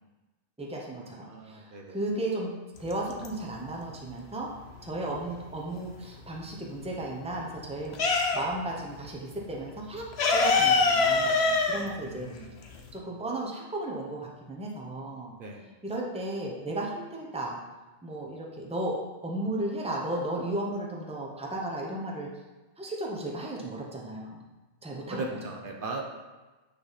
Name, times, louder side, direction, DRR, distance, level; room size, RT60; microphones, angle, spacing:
voice 1, 0.6-2.5 2.8-4.5 4.8-12.3 12.9-15.3 15.8-17.6 18.0-22.3 22.8-24.4 24.8-25.4, right 1 dB, 5° right, -2 dB, 0.8 m, -35 dB
voice 2, 1.3-2.0 11.9-12.5 15.3-15.6 25.1-26.0, right 3 dB, 60° right, 1 dB, 0.9 m, -38 dB
sound 1, 2.8-3.7 4.0-6.0 6.4-8.7 9.0-9.2 9.4-13.0, left 3 dB, 90° left, 1.0 m, -25 dB
8.6 x 3.5 x 4.1 m, 1.2 s
omnidirectional pair, 1.0 m